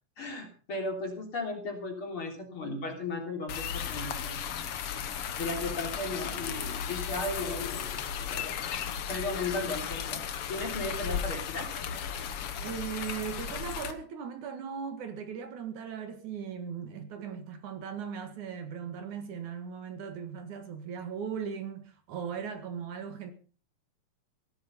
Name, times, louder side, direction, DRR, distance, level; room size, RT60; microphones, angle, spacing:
voice 1, 0.2-4.4 5.0-5.1 5.4-10.2 10.5-11.7, left 2 dB, 40° left, 4.0 m, -36 dB
sound 1, 3.5-13.9, left 8 dB, 55° left, 1.8 m, -35 dB
voice 2, 12.6-23.3, right 7 dB, 65° right, 3.2 m, -38 dB
17.0 x 13.0 x 5.4 m
omnidirectional pair, 3.7 m